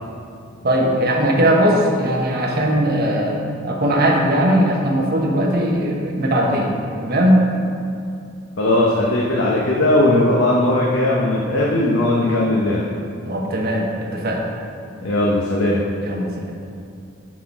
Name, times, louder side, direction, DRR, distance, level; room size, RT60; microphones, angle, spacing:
voice 1, 0.6-6.7 7.0-7.4 13.2-14.5 16.0-16.4, equal, 50° right, -1 dB, 1.1 m, -19 dB
voice 2, 8.6-12.8 15.0-15.8, left 1 dB, 80° left, -4 dB, 0.9 m, -18 dB
10.0 x 4.2 x 4.7 m, 2.4 s
head